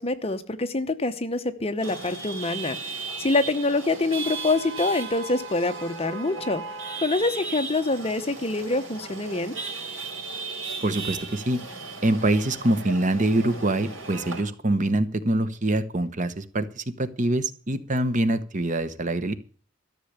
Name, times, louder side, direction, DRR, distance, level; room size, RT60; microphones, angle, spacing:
voice 1, 0.0-6.6 7.0-9.6, left 2 dB, 30° left, 10 dB, 0.9 m, -26 dB
Chatter / Vehicle horn car horn honking / Traffic noise roadway noise, 1.8-14.4, right 4 dB, 70° right, 5.6 m, -36 dB
voice 2, 10.8-11.6 12.0-19.3, right 1 dB, 35° right, 12 dB, 1.0 m, -24 dB
13.5 x 6.8 x 8.0 m, 0.41 s
head